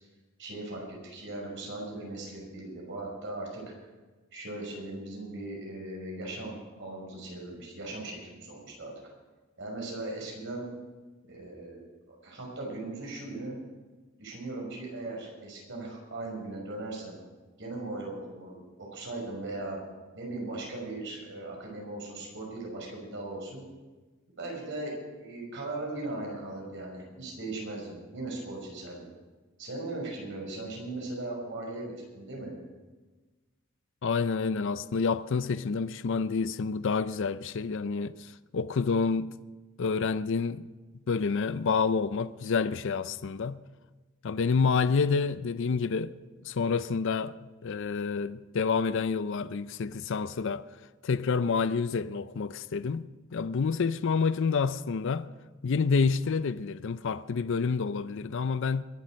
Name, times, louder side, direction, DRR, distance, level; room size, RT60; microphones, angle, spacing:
voice 1, 0.4-3.6 4.3-8.9 9.6-10.7 11.3-11.8 12.2-13.5 14.2-17.2 17.6-19.8 20.1-23.6 24.4-24.9 25.2-29.1 29.6-32.5, right 2 dB, 60° right, 5.9 m, -38 dB
voice 2, 34.0-39.3 39.8-40.7 41.1-43.6 44.2-46.1 46.4-47.3 47.6-50.6 51.0-55.3 55.6-58.8, left 5 dB, 60° left, 0.5 m, -28 dB
22.0 x 8.5 x 6.4 m
head